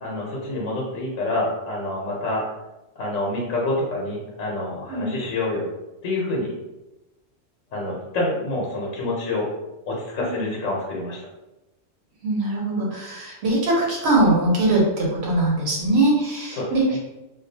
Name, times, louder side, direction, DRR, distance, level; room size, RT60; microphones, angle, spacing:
voice 1, 0.0-2.4 3.0-5.6 6.0-6.5 7.7-9.5 9.9-11.2 16.5-16.7, left 2 dB, 85° left, -3 dB, 1.0 m, -27 dB
voice 2, 12.2-17.0, right 2 dB, 60° right, -3 dB, 1.0 m, -21 dB
2.3 x 2.2 x 2.6 m, 0.99 s
omnidirectional pair, 1.3 m